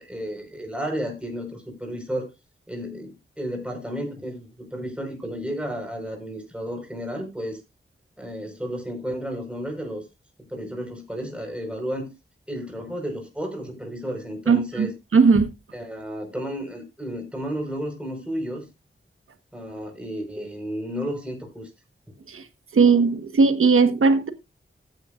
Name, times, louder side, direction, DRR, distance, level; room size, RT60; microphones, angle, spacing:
voice 1, 0.0-2.3 2.7-7.6 8.2-10.0 10.5-12.1 12.5-14.9 15.7-18.7 19.5-21.7 22.1-22.2, equal, 5° right, 4.9 m, -32 dB
voice 2, 14.5-15.5 22.3-22.4 22.7-24.3, right 4 dB, 85° right, 1.5 m, -18 dB
14.5 x 9.6 x 2.6 m
wide cardioid pair, 105°, 21 cm